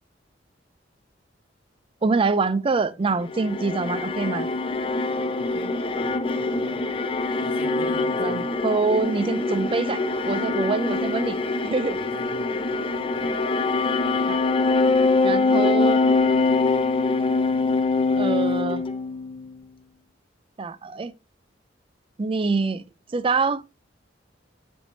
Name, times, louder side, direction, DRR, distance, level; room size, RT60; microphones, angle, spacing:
voice 1, 2.0-4.5 8.2-11.4 11.6-12.0 14.3-14.4 15.2-16.1 18.2-18.8 20.6-21.1 22.2-22.8 23.1-23.6, right 4 dB, 30° right, 0.4 m, -25 dB
sound 1, 3.2-19.5, left 3 dB, 30° left, 0.5 m, -24 dB
voice 2, 5.4-6.8 7.4-8.5 11.9-12.8 13.1-13.3, equal, 60° left, 1.8 m, -43 dB
10.0 x 3.5 x 2.7 m
head